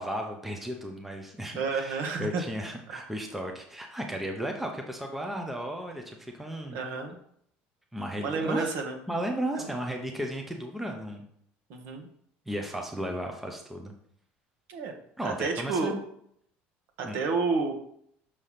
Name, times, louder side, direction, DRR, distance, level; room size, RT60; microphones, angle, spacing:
voice 1, 0.0-6.8 7.9-8.7 9.1-11.3 12.5-13.9 15.2-16.0 17.0-17.2, equal, 5° right, 2 dB, 0.7 m, -35 dB
voice 2, 1.5-2.4 2.9-3.0 6.7-7.1 8.2-9.0 9.5-9.7 11.7-12.1 14.7-14.9 15.2-15.9 17.0-17.7, right 4 dB, 60° right, 3 dB, 1.3 m, -30 dB
6.6 x 3.4 x 5.7 m, 0.68 s
cardioid pair, 165°, 4 cm